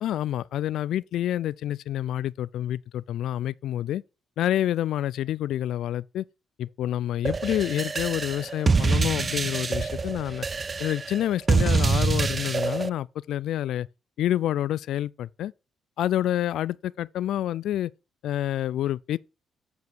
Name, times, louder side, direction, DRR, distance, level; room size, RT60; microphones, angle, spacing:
voice 1, 0.0-4.0 4.4-6.3 6.6-10.5 10.8-13.9 14.2-15.5 16.0-17.9 18.2-19.2, left 12 dB, 80° left, 0.3 m, -28 dB
sound 1, 7.2-12.9, right 4 dB, 35° right, 0.3 m, -25 dB
8.2 x 5.2 x 4.6 m
cardioid pair, 90°, 0 cm